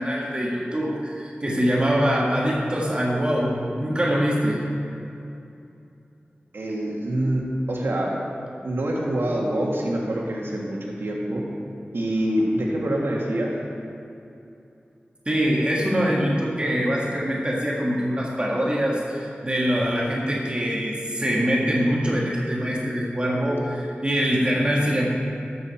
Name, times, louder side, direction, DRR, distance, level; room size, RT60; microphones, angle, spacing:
voice 1, 0.0-4.6 15.3-25.1, equal, 25° right, -4 dB, 1.9 m, -23 dB
voice 2, 6.5-8.2 8.6-11.4 11.9-13.5, right 1 dB, 80° right, -2 dB, 1.6 m, -25 dB
13.0 x 7.7 x 4.3 m, 2.7 s
wide cardioid pair, 70°, 4 cm